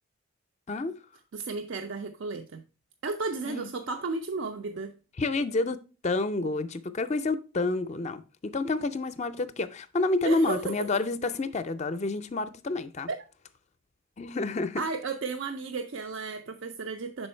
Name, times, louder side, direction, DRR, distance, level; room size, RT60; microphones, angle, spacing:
voice 1, 1.3-2.6 3.0-4.9 10.2-10.7 13.1-13.2 14.8-17.3, right 4 dB, 65° right, 0.5 m, -33 dB
voice 2, 5.2-13.1 14.2-14.8, left 2 dB, 35° left, 0.4 m, -29 dB
6.2 x 4.5 x 4.3 m
head